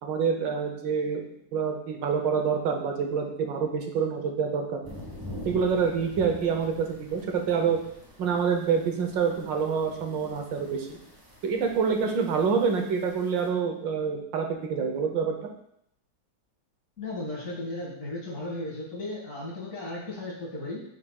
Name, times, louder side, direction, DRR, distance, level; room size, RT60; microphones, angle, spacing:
voice 1, 0.0-1.2 1.5-4.8 5.4-7.8 8.2-11.0 11.4-15.5, right 6 dB, 80° right, 4 dB, 1.6 m, -27 dB
sound 1, 4.8-13.5, left 1 dB, 15° right, 1.0 m, -46 dB
voice 2, 17.0-20.8, left 2 dB, 45° left, -4 dB, 2.2 m, -35 dB
8.9 x 4.9 x 2.3 m, 0.73 s
omnidirectional pair, 2.0 m